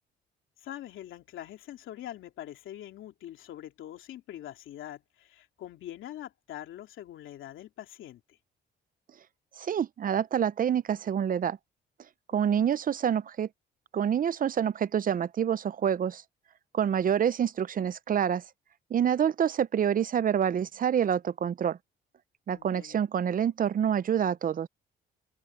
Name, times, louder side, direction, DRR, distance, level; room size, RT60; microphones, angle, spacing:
voice 1, 0.6-8.4 12.3-12.6 22.5-23.0, left 12 dB, 80° left, 3.0 m, -44 dB
voice 2, 9.6-11.6 12.3-13.5 13.9-16.2 16.7-18.4 18.9-21.8 22.5-24.7, right 8 dB, 45° right, 0.6 m, -27 dB
open air
cardioid pair, 90°, 20 cm